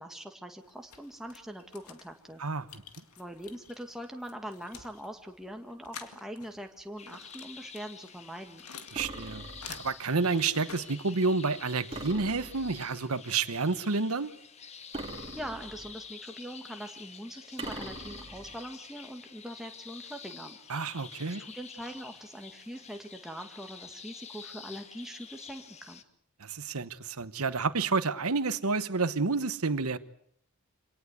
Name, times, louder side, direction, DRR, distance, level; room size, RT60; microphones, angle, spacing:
voice 1, 0.0-2.4 3.2-8.6 15.1-20.6 21.4-26.0, equal, ahead, 1.9 m, -42 dB
sound 1, 0.6-11.7, left 6 dB, 90° left, 2.1 m, -51 dB
sound 2, 7.0-26.0, left 6 dB, 30° left, 1.3 m, -49 dB
sound 3, 8.9-10.0 11.9-13.0 14.9-16.1 17.6-18.6, right 2 dB, 25° right, 2.7 m, -42 dB
voice 2, 8.9-14.3 20.7-21.4 26.4-30.0, right 4 dB, 85° right, 1.1 m, -29 dB
26.0 x 18.5 x 8.1 m
head